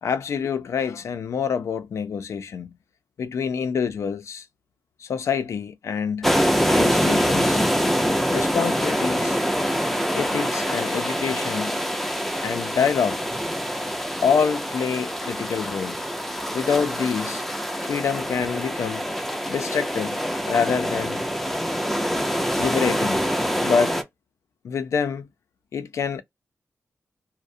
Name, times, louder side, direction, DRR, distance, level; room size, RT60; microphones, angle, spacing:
voice 1, 0.0-2.8 3.2-4.5 5.0-6.3 6.7-7.6 8.3-9.4 10.1-11.8 12.4-13.3 14.2-16.1 16.5-17.4 17.8-19.1 19.5-21.2 22.6-23.2 23.6-24.0 24.6-25.3 25.7-26.2, left 6 dB, 80° left, 0.4 m, -26 dB
sound 1, 6.2-24.0, equal, 5° left, 0.5 m, -25 dB
2.4 x 2.0 x 2.5 m
wide cardioid pair, 160°, 5 cm